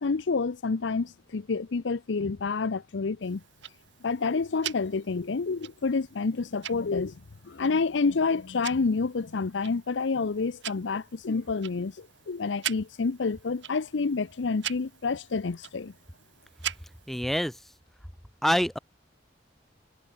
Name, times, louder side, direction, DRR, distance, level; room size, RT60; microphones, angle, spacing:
voice 1, 0.0-3.4 4.0-15.9, left 4 dB, 80° left, 0.6 m, -28 dB
Tick-tock, 3.2-17.2, right 10 dB, 80° right, 2.6 m, -43 dB
voice 2, 17.1-17.5 18.4-18.8, equal, ahead, 0.4 m, -25 dB
head